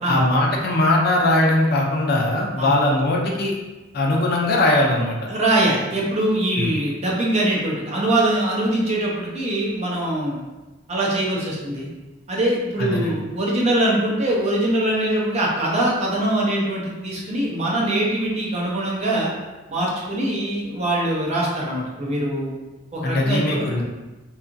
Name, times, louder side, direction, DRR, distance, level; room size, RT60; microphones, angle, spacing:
voice 1, 0.1-3.5 3.9-5.3 6.6-6.7 12.8-13.1 23.0-23.8, left 1 dB, 55° left, 0 dB, 0.4 m, -20 dB
voice 2, 5.3-10.4 10.9-11.9 12.3-19.3 19.7-22.5 22.9-23.7, right 1 dB, 35° right, -4 dB, 0.6 m, -22 dB
2.8 x 2.4 x 2.5 m, 1.1 s
head